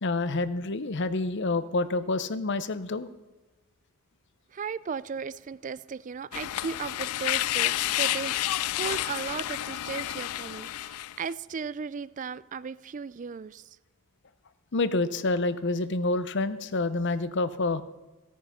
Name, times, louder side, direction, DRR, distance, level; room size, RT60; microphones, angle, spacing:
voice 1, 0.0-3.1 14.7-17.8, left 2 dB, 55° left, 0.7 m, -28 dB
voice 2, 4.5-8.4 8.7-13.8, right 5 dB, 35° right, 0.3 m, -36 dB
sound 1, 6.3-11.3, left 14 dB, 75° left, 0.3 m, -30 dB
16.5 x 9.4 x 5.7 m
head